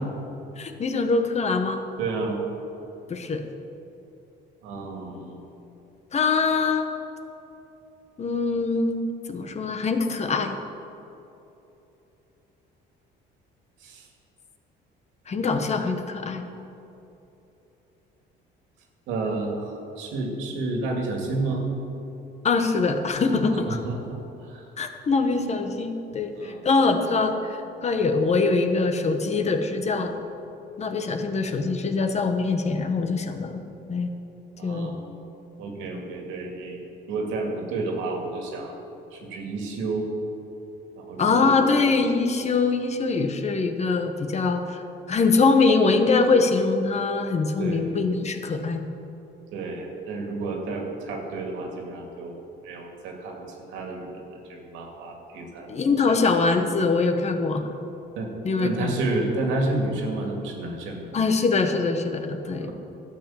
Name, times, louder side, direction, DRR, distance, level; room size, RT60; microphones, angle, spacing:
voice 1, 0.6-1.8 3.1-3.4 6.1-6.9 8.2-10.6 15.3-16.4 22.4-23.8 24.8-30.1 30.8-33.6 33.9-34.1 34.6-34.9 41.2-48.8 55.7-57.7 58.4-59.0 61.1-62.7, left 4 dB, 35° left, 6 dB, 1.1 m, -23 dB
voice 2, 2.0-2.4 4.6-5.4 13.8-14.0 19.1-21.6 23.7-24.2 24.5-24.6 26.4-26.5 34.6-35.0 35.6-36.8 37.1-38.7 39.1-40.1 41.0-41.6 47.6-47.9 49.5-52.4 52.6-55.9 58.2-58.3 58.6-61.1 62.6-62.7, right 2 dB, 90° right, 1 dB, 2.3 m, -30 dB
12.5 x 7.6 x 7.2 m, 3.0 s
cardioid pair, 115°, 19 cm